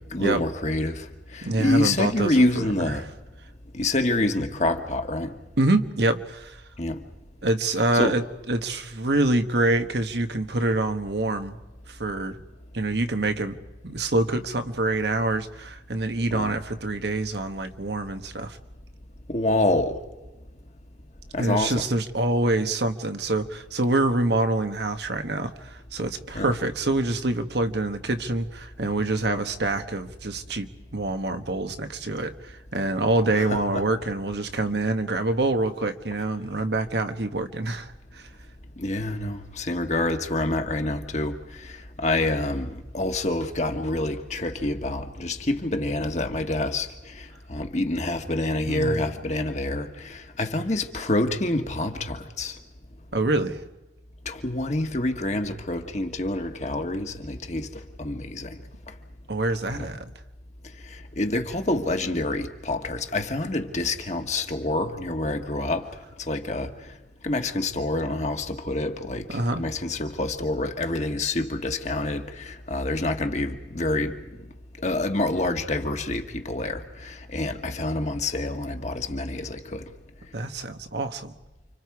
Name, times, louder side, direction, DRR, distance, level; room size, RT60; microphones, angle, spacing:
voice 1, 0.1-3.0 3.7-5.4 6.8-7.0 7.9-8.1 16.3-16.6 19.3-20.0 21.3-21.8 26.3-26.5 33.3-33.8 38.8-52.6 54.2-58.6 59.7-59.9 60.9-65.9 66.3-66.7 67.2-74.1 74.8-79.8, left 2 dB, 40° left, 1.5 m, -27 dB
voice 2, 1.4-2.9 5.6-6.6 7.4-11.6 11.9-12.4 12.7-13.6 13.8-18.6 21.4-38.3 48.7-49.0 53.1-53.6 59.3-60.1 69.3-69.6 80.3-81.3, right 2 dB, 70° right, 1.4 m, -26 dB
29.5 x 26.0 x 4.8 m
head